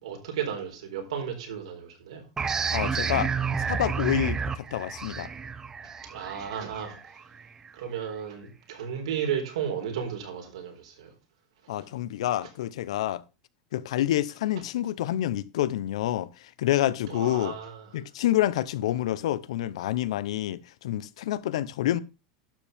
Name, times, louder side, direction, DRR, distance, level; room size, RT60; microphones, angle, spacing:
voice 1, 0.0-2.2 6.0-7.0 7.7-11.1 17.1-17.9, right 8 dB, 90° right, 4.2 m, -34 dB
sound 1, 2.4-7.7, right 6 dB, 20° right, 0.7 m, -30 dB
voice 2, 2.7-3.3 3.7-5.3 11.7-13.2 13.7-17.5 17.9-22.0, left 13 dB, 80° left, 0.7 m, -28 dB
11.5 x 7.3 x 3.5 m
supercardioid pair, 130°, 3 cm